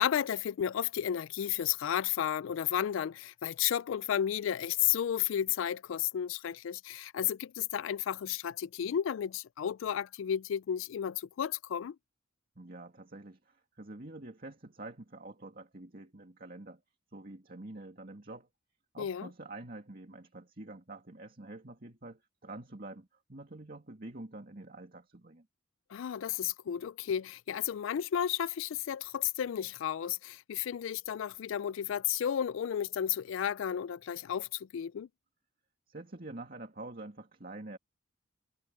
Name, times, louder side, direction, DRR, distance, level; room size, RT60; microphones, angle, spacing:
voice 1, 0.0-12.0 19.0-19.3 25.9-35.1, left 9 dB, 70° left, 0.3 m, -33 dB
voice 2, 12.6-16.8 17.1-18.5 18.9-25.5 35.9-37.8, right 2 dB, 45° right, 2.3 m, -47 dB
head